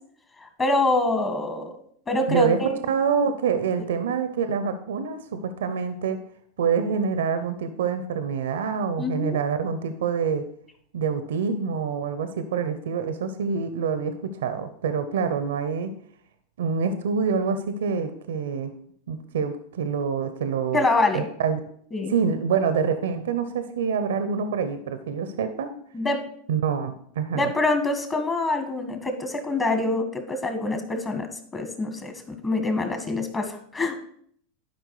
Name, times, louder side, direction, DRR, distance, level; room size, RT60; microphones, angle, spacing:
voice 1, 0.4-1.7 2.1-2.8 9.0-9.4 20.7-21.2 21.9-22.1 25.9-26.2 27.3-34.0, left 2 dB, 25° left, 5 dB, 1.8 m, -25 dB
voice 2, 2.3-2.6 2.9-6.2 6.6-10.4 10.9-15.9 16.6-18.7 19.1-20.8 21.1-21.6 22.1-25.7 26.5-27.5, right 6 dB, 80° right, 9 dB, 0.8 m, -26 dB
11.5 x 5.0 x 4.9 m, 0.64 s
hypercardioid pair, 100°, 0 cm